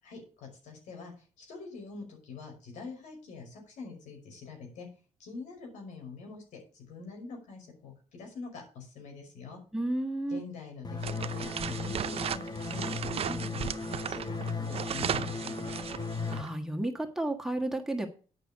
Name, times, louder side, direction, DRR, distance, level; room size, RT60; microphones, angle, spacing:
voice 1, 0.0-4.9 5.2-9.6 10.3-15.8, left 4 dB, 85° left, 2 dB, 5.6 m, -45 dB
voice 2, 9.7-10.4 16.3-18.1, right 1 dB, 5° right, 2 dB, 1.6 m, -32 dB
sound 1, 10.8-16.4, left 4 dB, 35° left, 1.4 m, -36 dB
sound 2, 11.0-16.5, right 9 dB, 55° right, 0.6 m, -36 dB
9.3 x 6.1 x 7.3 m, 0.38 s
cardioid pair, 90°, 12 cm